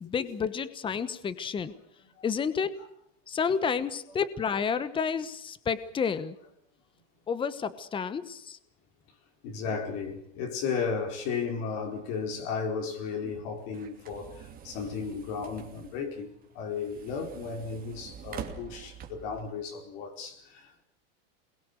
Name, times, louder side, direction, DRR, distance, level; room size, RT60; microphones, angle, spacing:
voice 1, 0.0-1.7 2.2-2.8 3.3-6.3 7.3-8.6, left 6 dB, 15° left, 1.1 m, -30 dB
voice 2, 9.4-14.3 14.6-20.4, left 5 dB, 50° left, 4.7 m, -34 dB
sound 1, 12.9-19.5, right 8 dB, 25° right, 2.8 m, -46 dB
28.0 x 21.5 x 6.6 m
supercardioid pair, 150°, 36 cm